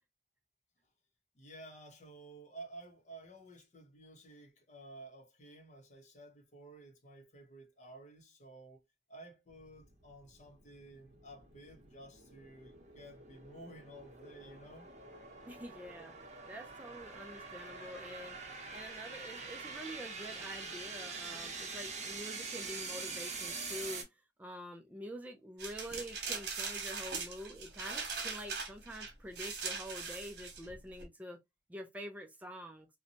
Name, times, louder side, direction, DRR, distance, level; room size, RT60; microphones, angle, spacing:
voice 1, 1.3-8.8 9.1-14.9, right 2 dB, 45° left, 0.7 m, -53 dB
sound 1, 9.5-24.0, right 4 dB, 40° right, 0.8 m, -45 dB
voice 2, 15.5-16.1 16.5-18.4 18.7-24.0 24.4-31.4 31.7-32.9, equal, 10° right, 0.3 m, -46 dB
sound 2, 25.6-31.0, right 5 dB, 65° right, 1.0 m, -40 dB
2.6 x 2.1 x 2.7 m
head